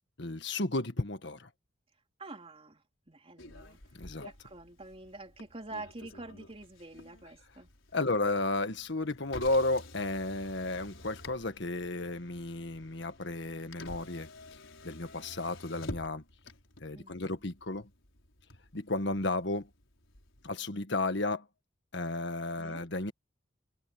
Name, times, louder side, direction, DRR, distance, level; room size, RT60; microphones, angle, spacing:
voice 1, 0.2-1.5 3.9-4.3 7.9-14.3 14.8-16.2 16.8-17.9 18.7-19.7 20.4-21.5 21.9-23.1, left 2 dB, 65° left, 1.7 m, -33 dB
voice 2, 2.2-7.7 16.9-17.4 22.6-22.8, right 2 dB, 30° right, 3.4 m, -47 dB
Motor vehicle (road), 3.4-20.5, left 1 dB, 90° left, 5.0 m, -50 dB
head